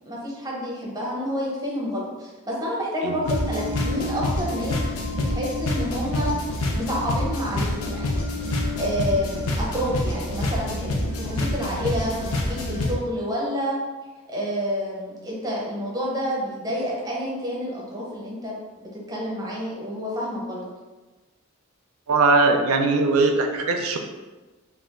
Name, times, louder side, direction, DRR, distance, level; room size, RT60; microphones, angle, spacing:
voice 1, 0.1-4.8 5.3-6.3 6.7-8.5 8.8-13.8 14.3-18.6 19.1-20.6, equal, 15° right, -4 dB, 0.6 m, -29 dB
sound 1, 3.2-12.9, left 1 dB, 80° left, 0.5 m, -27 dB
voice 2, 22.1-24.0, right 3 dB, 80° right, 4 dB, 0.4 m, -20 dB
2.4 x 2.3 x 3.5 m, 1.2 s
head